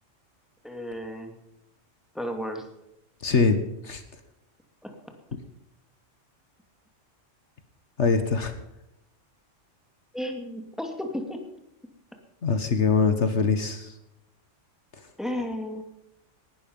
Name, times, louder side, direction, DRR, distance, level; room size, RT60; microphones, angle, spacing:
voice 1, 0.6-1.4 2.1-2.7 4.8-4.9 10.1-11.4 15.2-15.8, equal, ahead, 4 dB, 2.4 m, -33 dB
voice 2, 3.2-3.6 3.8-4.0 8.0-8.5 12.4-13.9, left 4 dB, 65° left, 9 dB, 1.7 m, -23 dB
18.5 x 12.0 x 5.4 m, 0.86 s
omnidirectional pair, 1.3 m